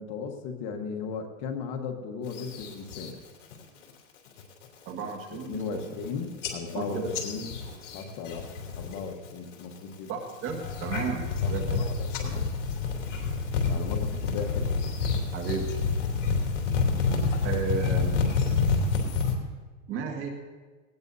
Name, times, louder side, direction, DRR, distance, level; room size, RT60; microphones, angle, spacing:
voice 1, 0.0-3.2 5.5-7.5 7.9-10.1 11.4-12.5 13.7-14.8, left 5 dB, 40° left, 4 dB, 1.4 m, -36 dB
sound 1, 2.3-3.1 3.5-3.9 4.3-4.6 5.1-5.2 5.4-6.1 6.4-9.0 9.2-9.8 10.3-19.3, left 4 dB, 65° left, 3.1 m, -28 dB
voice 2, 4.9-5.9 6.7-7.2 7.7-7.8 10.1-11.9 15.3-15.7 17.4-18.2 19.9-20.3, right 6 dB, 30° right, 3 dB, 1.9 m, -33 dB
19.0 x 18.0 x 2.7 m, 1.4 s
supercardioid pair, 145°, 40 cm